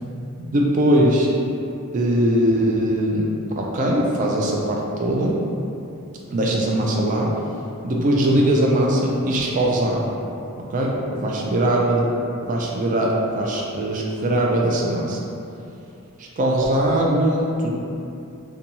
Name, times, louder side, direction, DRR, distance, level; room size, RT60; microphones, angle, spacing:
voice 1, 0.5-1.3 1.9-3.3 3.6-5.4 6.3-7.3 7.8-10.1 10.6-12.1 12.5-15.2 16.2-17.7, right 1 dB, 35° right, -2 dB, 0.3 m, -20 dB
2.6 x 2.2 x 2.8 m, 2.7 s
head